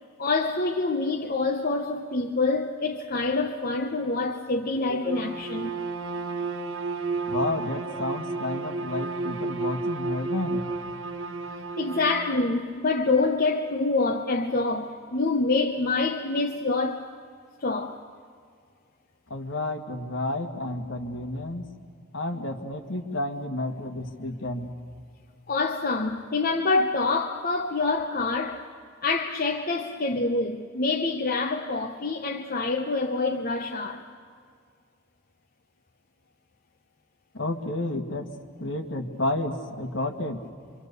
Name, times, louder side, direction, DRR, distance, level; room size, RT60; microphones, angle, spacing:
voice 1, 0.2-5.8 11.8-17.1 17.6-18.0 25.5-28.7 29.0-34.0, left 3 dB, 50° left, 0.9 m, -26 dB
Bowed string instrument, 5.0-12.5, right 3 dB, 80° right, 1.0 m, -32 dB
voice 2, 7.3-10.7 19.3-21.7 22.1-24.7 37.3-38.3 38.6-40.4, left 2 dB, 75° left, 1.8 m, -31 dB
26.5 x 25.0 x 6.9 m
head